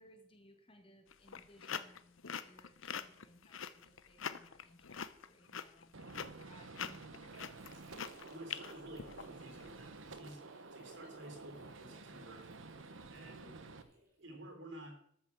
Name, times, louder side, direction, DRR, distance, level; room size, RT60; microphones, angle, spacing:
voice 1, 0.0-7.1, equal, 30° left, 5 dB, 1.8 m, -63 dB
sound 1, 1.1-9.7, left 7 dB, 85° left, 0.8 m, -44 dB
Gunshot gunfire, 5.9-13.8, right 3 dB, 80° right, 1.1 m, -51 dB
Water / Sink (filling or washing), 7.1-14.4, right 1 dB, 45° right, 6.2 m, -67 dB
voice 2, 8.3-12.5 13.1-13.6 14.2-15.0, right 1 dB, 65° right, 4 dB, 3.8 m, -52 dB
13.0 x 7.1 x 7.3 m, 0.69 s
head